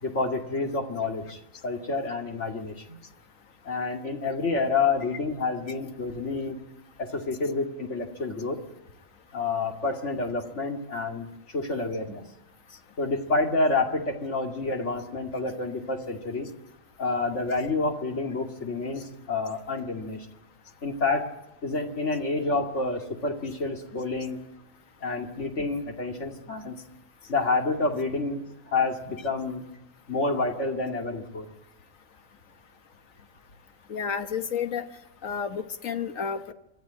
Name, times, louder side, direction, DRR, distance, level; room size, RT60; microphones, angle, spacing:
voice 1, 0.0-3.0 3.7-6.6 7.0-8.6 9.3-12.2 13.0-16.5 17.0-20.3 20.8-21.3 21.6-24.4 25.0-26.8 27.3-29.6 30.1-31.5, left 3 dB, 65° left, 3 dB, 2.7 m, -28 dB
voice 2, 33.9-34.9 35.2-36.5, left 7 dB, 80° left, 9 dB, 1.6 m, -31 dB
24.5 x 13.5 x 8.8 m, 0.94 s
omnidirectional pair, 1.4 m